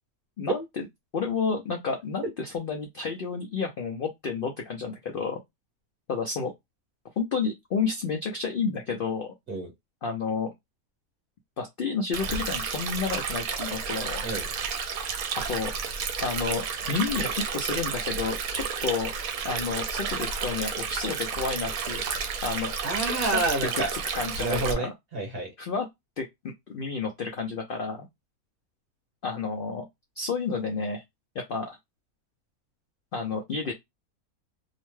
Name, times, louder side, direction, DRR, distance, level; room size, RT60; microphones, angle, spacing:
voice 1, 0.4-0.9 1.1-5.4 6.1-6.5 7.2-9.3 10.0-10.5 11.6-14.2 15.5-15.7 16.2-19.1 19.4-22.1 22.4-22.7 23.3-23.4 23.7-24.9 25.6-25.9 26.2-28.1 29.2-29.8 30.2-31.0 31.3-31.8 33.1-33.7, left 5 dB, 75° left, 0.5 m, -30 dB
Stream, 12.1-24.7, right 6 dB, 75° right, 1.0 m, -31 dB
voice 2, 22.8-23.9 24.4-25.5, right 2 dB, 45° right, 1.1 m, -29 dB
2.7 x 2.1 x 3.0 m
omnidirectional pair, 1.6 m